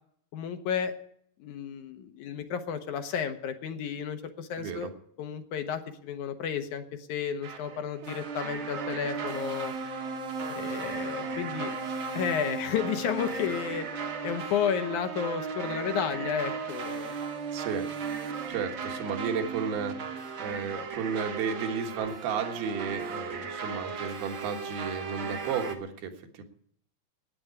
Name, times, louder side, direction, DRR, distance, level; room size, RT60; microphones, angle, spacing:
voice 1, 0.3-0.9 1.4-4.9 5.2-9.7 10.5-11.7 12.1-13.9 14.2-17.1, left 8 dB, 65° left, 8 dB, 2.1 m, -32 dB
voice 2, 4.6-4.9 17.5-17.9 18.5-26.4, right 6 dB, 80° right, 4 dB, 3.4 m, -33 dB
sound 1, 7.4-25.7, right 5 dB, 55° right, 1.3 m, -36 dB
12.5 x 9.6 x 9.6 m, 0.67 s
omnidirectional pair, 4.4 m